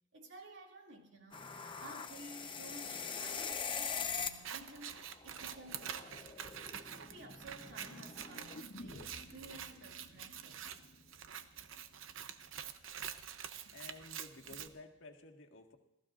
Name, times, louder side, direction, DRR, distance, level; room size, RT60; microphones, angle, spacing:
voice 1, 0.1-1.4 1.8-6.3 6.9-10.7, right 2 dB, 70° right, 1 dB, 2.6 m, -54 dB
sound 1, 1.3-4.5 4.8-8.6, left 6 dB, 25° left, 0.8 m, -43 dB
Scissors, 4.3-14.7, right 8 dB, 90° right, 0.8 m, -47 dB
sound 2, 8.5-12.5 12.8-12.9, left 1 dB, 55° left, 0.9 m, -55 dB
voice 2, 13.5-15.8, left 2 dB, 80° left, 2 dB, 1.8 m, -53 dB
27.0 x 16.0 x 2.6 m, 0.86 s
head